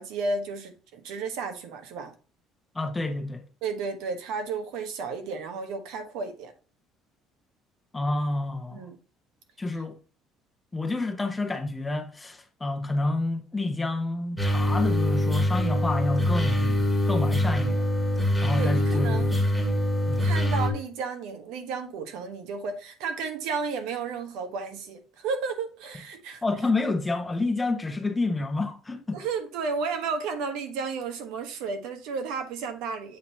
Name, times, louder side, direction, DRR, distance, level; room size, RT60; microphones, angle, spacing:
voice 1, 0.0-2.1 3.6-6.5 8.7-8.9 18.6-19.3 20.2-26.4 29.1-33.2, right 4 dB, 80° right, 1.2 m, -33 dB
voice 2, 2.7-3.5 7.9-8.9 9.6-10.0 10.7-17.9 18.4-19.3 20.1-20.3 26.4-29.2, left 2 dB, 15° left, 0.8 m, -29 dB
sound 1, 14.4-20.7, left 1 dB, 5° right, 1.4 m, -24 dB
7.5 x 2.8 x 4.4 m
cardioid pair, 100°, 0 cm